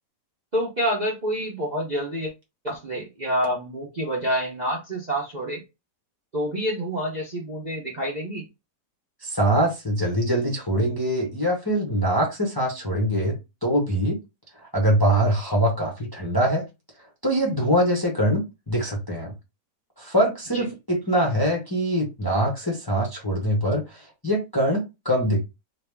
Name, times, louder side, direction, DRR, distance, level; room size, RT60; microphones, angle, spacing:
voice 1, 0.5-2.3 2.6-5.6 6.3-8.4 20.5-20.6, equal, 35° right, 0.8 m, -27 dB
voice 2, 9.2-14.2 14.7-16.6 17.2-19.3 20.0-25.4, right 1 dB, 15° left, 0.8 m, -23 dB
3.0 x 2.7 x 3.4 m
omnidirectional pair, 1.8 m